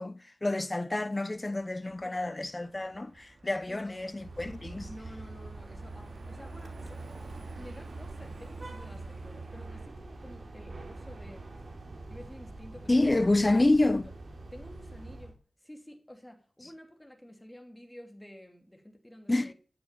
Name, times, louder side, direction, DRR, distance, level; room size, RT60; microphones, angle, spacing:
voice 1, 0.0-4.9 12.9-14.1 19.3-19.5, left 2 dB, 25° left, 0.7 m, -28 dB
Car passing by, 1.4-9.9, right 3 dB, 80° right, 2.8 m, -52 dB
voice 2, 3.6-4.1 4.8-7.0 7.6-11.5 12.1-14.0 14.5-19.5, equal, 10° left, 2.9 m, -50 dB
sound 1, 4.1-15.3, right 2 dB, 65° right, 3.0 m, -44 dB
13.5 x 7.2 x 9.0 m
wide cardioid pair, 90°, 0 cm